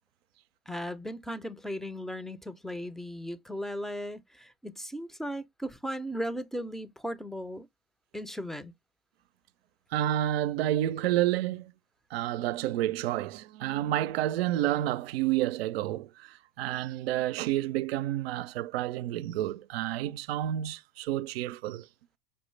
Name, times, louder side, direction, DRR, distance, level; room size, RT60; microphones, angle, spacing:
voice 1, 0.7-7.7 8.1-8.7, equal, ahead, 0.4 m, -37 dB
voice 2, 9.9-11.7 12.1-21.9, right 13 dB, 85° right, 0.5 m, -30 dB
5.4 x 2.1 x 3.1 m
hypercardioid pair, 95°, 30 cm